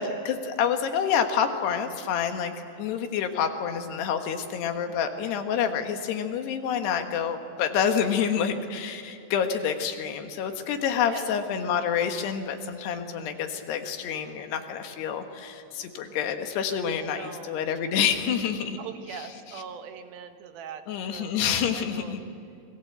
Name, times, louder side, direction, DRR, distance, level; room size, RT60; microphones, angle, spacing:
voice 1, 0.0-18.8 19.1-19.3 20.9-22.2, left 7 dB, 85° left, 6 dB, 3.6 m, -28 dB
voice 2, 11.1-11.4 17.1-17.6 18.8-22.1, right 7 dB, 70° right, 7 dB, 2.9 m, -41 dB
29.5 x 21.5 x 8.0 m, 2.5 s
omnidirectional pair, 4.6 m